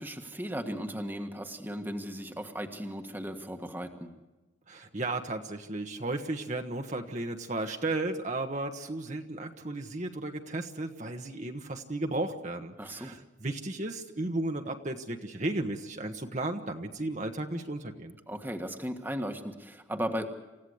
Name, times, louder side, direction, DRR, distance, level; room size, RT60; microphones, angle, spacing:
voice 1, 0.0-4.1 12.8-13.1 18.3-20.3, equal, 10° right, 5 dB, 1.6 m, -36 dB
voice 2, 4.7-18.2, right 2 dB, 40° right, 4 dB, 1.4 m, -34 dB
28.5 x 16.0 x 8.0 m, 1.1 s
head